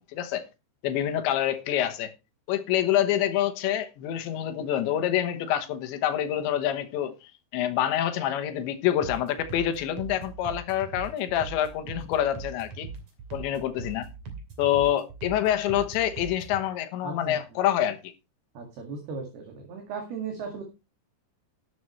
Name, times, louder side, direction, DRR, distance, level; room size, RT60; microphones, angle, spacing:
voice 1, 0.1-0.5 0.8-2.1 2.5-7.1 7.5-12.9 13.3-14.1 14.6-18.1, left 11 dB, 75° left, 3.2 m, -26 dB
sound 1, 9.0-16.6, right 4 dB, 40° right, 3.3 m, -41 dB
voice 2, 17.0-17.4 18.6-20.6, right 5 dB, 60° right, 3.8 m, -36 dB
12.5 x 11.0 x 3.2 m
omnidirectional pair, 5.7 m